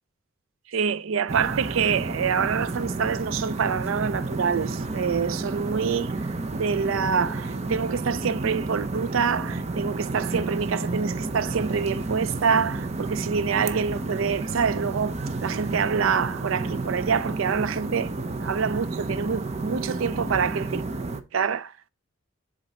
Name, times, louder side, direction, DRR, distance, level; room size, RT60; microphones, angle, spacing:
voice 1, 0.7-6.1 6.5-15.2 15.4-20.8 21.3-21.9, right 6 dB, 80° right, 0.4 m, -26 dB
sound 1, 1.3-21.2, right 3 dB, 35° right, 0.6 m, -31 dB
7.5 x 3.9 x 4.1 m
head